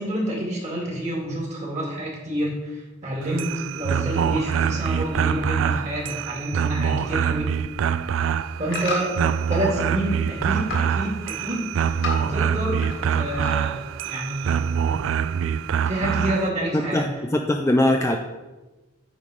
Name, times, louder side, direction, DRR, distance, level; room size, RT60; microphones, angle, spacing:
voice 1, 0.0-7.5 8.6-9.2 9.5-11.7 12.1-12.8 13.1-14.6 15.8-17.0, right 1 dB, 35° right, -3 dB, 2.2 m, -28 dB
sound 1, 3.2-16.5, right 7 dB, 80° right, 0.3 m, -25 dB
sound 2, 7.9-9.8 10.1-10.9 11.2-13.0 13.2-13.8 14.3-14.4, left 2 dB, 75° left, 1.7 m, -33 dB
voice 2, 16.7-18.2, left 1 dB, 15° left, 4 dB, 0.4 m, -21 dB
9.2 x 3.4 x 5.0 m, 1.1 s
head